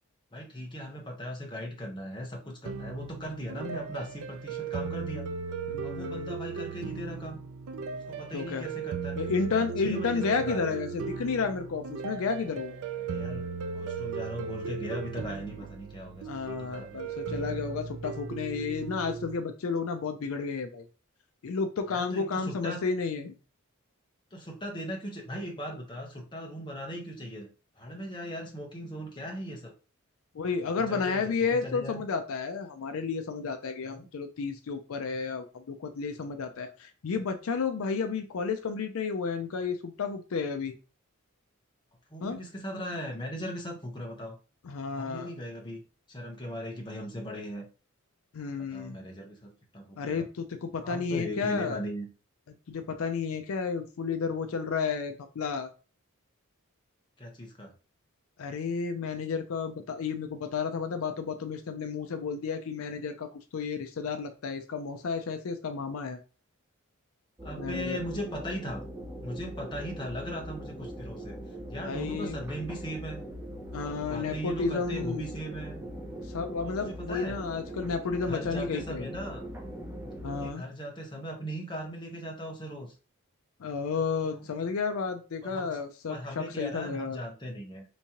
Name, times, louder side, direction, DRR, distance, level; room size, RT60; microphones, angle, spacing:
voice 1, 0.3-5.3 5.8-7.4 7.9-9.2 9.5-10.8 13.0-17.2 21.9-22.8 24.3-27.5 27.8-29.7 30.7-32.0 33.8-34.1 42.1-44.4 45.0-45.8 46.1-47.7 48.6-50.2 50.8-52.1 57.2-57.7 67.4-68.8 69.2-71.3 71.7-73.2 73.8-75.8 76.8-77.4 78.1-79.5 80.3-82.9 84.4-84.5 85.4-85.8 86.1-87.8, equal, 20° left, 0 dB, 0.8 m, -38 dB
sound 1, 2.6-19.4, right 5 dB, 80° right, 0.4 m, -37 dB
voice 2, 5.7-6.4 8.3-8.7 9.2-12.8 16.2-20.9 21.4-23.3 30.3-40.8 42.2-42.4 44.6-45.3 48.3-49.0 50.0-51.8 52.5-55.7 58.4-66.2 67.6-68.0 71.7-72.4 73.7-75.3 76.2-79.1 80.2-80.7 83.6-87.2, left 5 dB, 65° left, 7 dB, 0.4 m, -32 dB
sound 2, 67.4-80.5, right 1 dB, 10° right, 0.5 m, -41 dB
3.5 x 3.0 x 2.8 m, 0.34 s
head